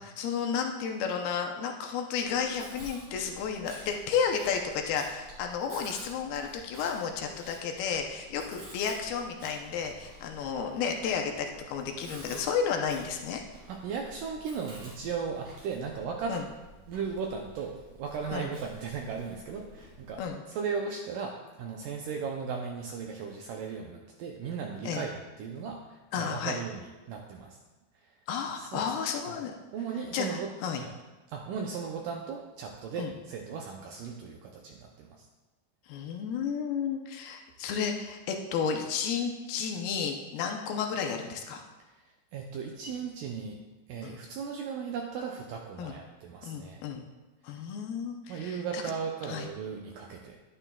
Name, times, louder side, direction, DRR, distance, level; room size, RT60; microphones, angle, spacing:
voice 1, 0.0-13.4 16.3-16.4 18.3-18.5 20.2-20.4 24.9-25.0 26.1-26.6 28.3-29.5 30.1-30.8 33.0-33.1 35.9-41.6 44.0-44.2 45.8-46.0 46.4-47.0 47.4-48.8 49.3-49.5, left 6 dB, 80° left, 3 dB, 2.6 m, -32 dB
Chewing mastication, 2.2-20.3, right 1 dB, 55° right, 4.3 m, -51 dB
voice 2, 13.7-16.4 16.9-20.2 20.5-27.6 28.0-28.1 28.6-28.8 29.3-29.4 29.7-31.0 31.3-35.3 42.3-43.6 43.9-46.8 48.3-50.4, right 6 dB, 80° right, 1 dB, 1.9 m, -37 dB
11.0 x 9.7 x 2.3 m, 1.1 s
omnidirectional pair, 4.4 m